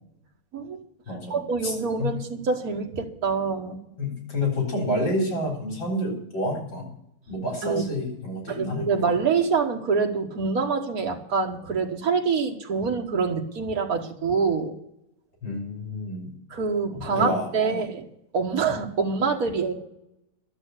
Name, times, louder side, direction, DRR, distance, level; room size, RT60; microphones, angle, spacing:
voice 1, 0.5-0.8 1.3-3.8 7.6-7.8 8.5-14.7 16.5-18.1 18.3-19.7, right 5 dB, 45° right, 3 dB, 1.8 m, -25 dB
voice 2, 1.1-1.4 1.6-1.7 2.0-2.2 4.0-6.9 7.3-9.2 15.4-16.4 16.9-17.9, left 1 dB, 60° left, -1 dB, 4.5 m, -29 dB
12.0 x 7.5 x 8.2 m, 0.80 s
omnidirectional pair, 2.3 m